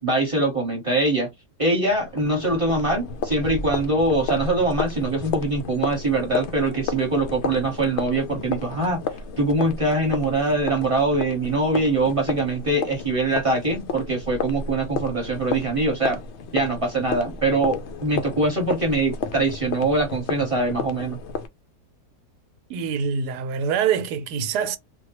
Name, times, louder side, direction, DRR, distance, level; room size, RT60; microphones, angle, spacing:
voice 1, 0.0-1.3 1.6-9.0 9.4-16.2 16.5-21.2, right 2 dB, 25° right, 1.0 m, -23 dB
sound 1, 1.9-21.5, left 4 dB, 80° left, 0.6 m, -32 dB
voice 2, 22.7-24.8, right 7 dB, 80° right, 1.1 m, -25 dB
3.9 x 2.2 x 2.9 m
omnidirectional pair, 1.7 m